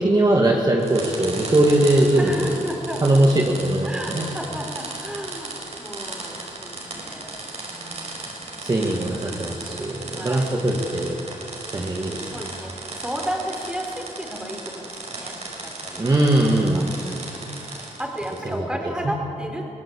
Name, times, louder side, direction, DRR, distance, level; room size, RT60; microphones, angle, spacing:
voice 1, 0.0-2.6 3.0-4.3 8.6-11.2 11.7-12.3 16.0-16.9, right 1 dB, 30° right, -1 dB, 2.2 m, -20 dB
sound 1, 0.8-18.6, right 2 dB, 50° right, 5.4 m, -36 dB
voice 2, 2.2-3.2 3.8-7.4 7.7-8.7 10.1-10.5 12.2-19.7, equal, 5° right, 2 dB, 4.0 m, -34 dB
23.0 x 18.0 x 8.6 m, 2.8 s
cardioid pair, 100°, 14 cm